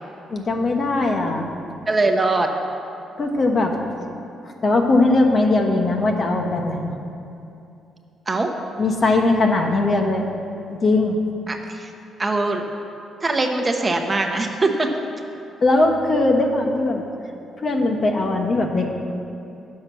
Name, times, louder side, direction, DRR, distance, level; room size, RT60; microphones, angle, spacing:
voice 1, 0.3-1.5 3.2-3.8 4.6-6.9 8.8-10.3 10.7-11.2 15.6-17.0 17.6-18.9, left 2 dB, 45° left, 2 dB, 1.1 m, -19 dB
voice 2, 1.9-2.5 8.3-8.5 11.5-11.9 12.2-12.6 13.2-14.9, right 2 dB, 25° right, 3 dB, 0.9 m, -21 dB
9.5 x 6.6 x 6.0 m, 2.7 s
cardioid pair, 90°, 0 cm